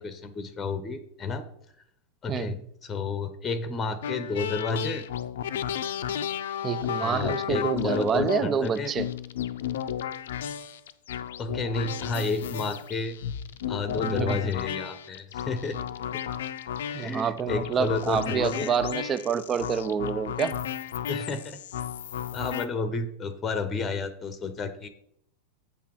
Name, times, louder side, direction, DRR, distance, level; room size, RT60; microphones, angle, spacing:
voice 1, 0.0-1.5 2.2-5.1 7.0-8.9 11.4-13.2 13.7-15.8 16.1-16.2 16.9-18.7 21.1-21.6 22.3-24.9, left 4 dB, 20° left, 0.8 m, -31 dB
sound 1, 4.0-22.7, left 9 dB, 60° left, 0.5 m, -33 dB
voice 2, 6.6-9.1 14.0-14.5 16.9-20.6, right 7 dB, 25° right, 0.4 m, -28 dB
8.1 x 5.8 x 4.7 m
figure-of-eight pair, 90°, 0 cm